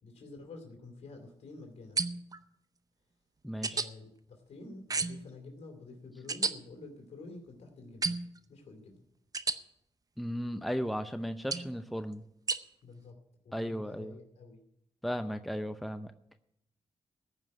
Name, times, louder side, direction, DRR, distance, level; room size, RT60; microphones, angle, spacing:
voice 1, 0.0-2.0 3.6-8.2 8.5-9.0 12.8-13.2 13.4-14.6, left 3 dB, 85° left, 3 dB, 2.6 m, -49 dB
sound 1, 2.0-2.4 3.6-3.9 4.9-5.3 6.3-6.5 8.0-8.4 9.3-9.6 11.5-11.7 12.5-12.6, right 4 dB, 35° right, 0.7 m, -32 dB
voice 2, 3.4-3.9 10.2-12.2 13.5-14.2 15.0-16.1, equal, ahead, 9 dB, 0.6 m, -35 dB
15.0 x 5.6 x 9.4 m, 0.78 s
cardioid pair, 85°, 11 cm